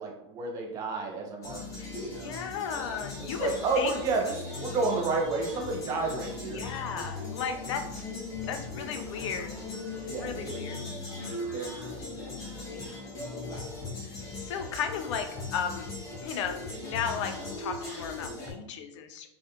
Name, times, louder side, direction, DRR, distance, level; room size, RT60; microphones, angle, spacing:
voice 1, 0.0-2.4 3.2-6.6 10.1-10.4 11.5-12.1, right 3 dB, 20° right, 0 dB, 0.4 m, -31 dB
sound 1, 1.4-18.5, left 3 dB, 20° left, 0.7 m, -38 dB
voice 2, 1.8-4.0 6.5-8.1 8.5-9.5 10.0-10.8 11.1-11.4 14.0-15.9 16.2-19.3, left 6 dB, 70° left, 6 dB, 0.4 m, -35 dB
2.4 x 2.1 x 2.7 m, 0.81 s
supercardioid pair, 140°, 16 cm